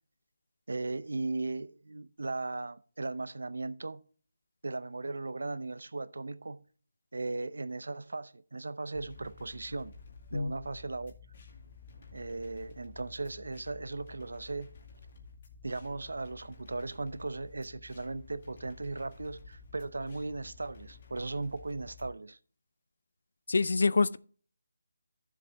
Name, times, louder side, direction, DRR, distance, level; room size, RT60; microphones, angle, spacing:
voice 1, 0.7-4.0 4.6-6.6 7.1-9.9 10.3-11.1 12.1-14.7 15.6-22.4, right 3 dB, 80° right, 0.7 m, -37 dB
sound 1, 8.9-22.0, left 4 dB, 40° left, 2.2 m, -53 dB
voice 2, 23.5-24.2, left 4 dB, 65° left, 0.6 m, -26 dB
12.5 x 7.4 x 3.4 m
figure-of-eight pair, 170°, 0 cm